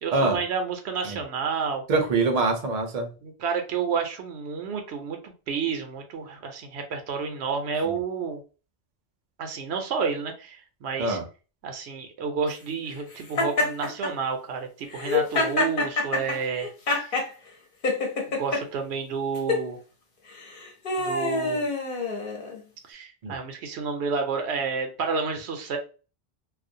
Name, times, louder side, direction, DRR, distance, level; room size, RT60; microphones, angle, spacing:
voice 1, 0.0-1.8 3.2-8.4 9.4-11.2 11.6-17.1 18.4-19.8 21.0-21.7 22.9-25.8, right 5 dB, 80° right, 5 dB, 0.8 m, -30 dB
voice 2, 1.9-3.1 11.0-11.2 23.2-23.3, right 3 dB, 45° right, 3 dB, 0.6 m, -24 dB
Laughter, 13.4-14.1 14.9-17.3 17.8-18.6 19.3-19.6 20.4-22.6, left 3 dB, 55° left, 0.9 m, -26 dB
2.4 x 2.1 x 2.6 m, 0.34 s
omnidirectional pair, 1.1 m